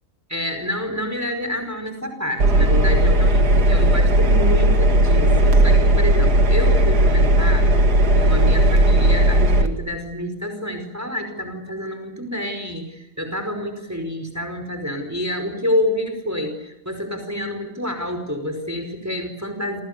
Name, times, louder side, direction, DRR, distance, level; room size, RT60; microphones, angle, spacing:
voice 1, 0.3-7.7 8.1-19.8, left 1 dB, 10° right, 6 dB, 5.1 m, -28 dB
Engine, 2.4-9.7, right 1 dB, 80° right, 2.6 m, -16 dB
28.0 x 27.0 x 6.9 m, 0.90 s
omnidirectional pair, 1.7 m